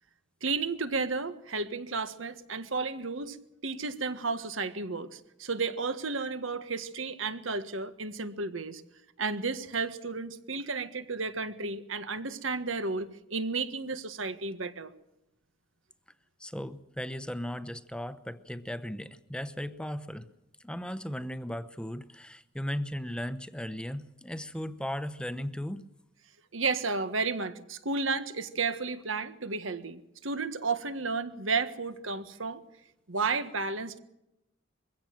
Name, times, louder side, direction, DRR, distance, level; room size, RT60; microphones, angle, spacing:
voice 1, 0.4-3.4 3.6-8.8 9.2-14.9 26.5-32.6 33.1-34.0, right 4 dB, 85° right, 10 dB, 1.6 m, -32 dB
voice 2, 16.4-20.3 20.6-25.8, equal, 5° left, 12 dB, 0.9 m, -36 dB
23.0 x 16.0 x 7.6 m, 0.88 s
head